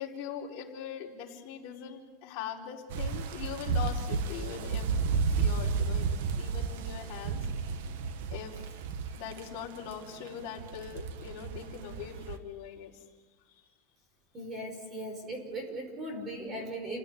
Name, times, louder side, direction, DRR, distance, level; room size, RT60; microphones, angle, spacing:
voice 1, 0.0-4.8 5.4-6.1 6.4-7.4 8.3-8.6 9.1-13.0 13.5-13.6 16.5-16.6, left 8 dB, 45° left, -3 dB, 5.0 m, -41 dB
sound 1, 2.9-12.4, right 5 dB, 75° right, 1.8 m, -32 dB
voice 2, 14.3-17.0, right 1 dB, 20° right, 4 dB, 5.3 m, -38 dB
29.5 x 16.5 x 9.8 m, 1.3 s
supercardioid pair, 165°, 0 cm